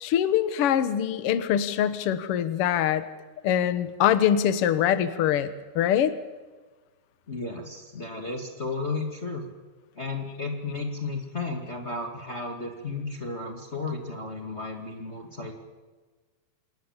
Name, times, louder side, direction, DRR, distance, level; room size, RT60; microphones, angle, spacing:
voice 1, 0.0-3.1 3.4-5.5 5.8-6.1, left 10 dB, 60° left, 11 dB, 1.7 m, -23 dB
voice 2, 7.3-9.4 9.9-15.5, left 3 dB, 25° left, 1 dB, 2.1 m, -33 dB
27.5 x 19.0 x 7.4 m, 1.3 s
omnidirectional pair, 3.8 m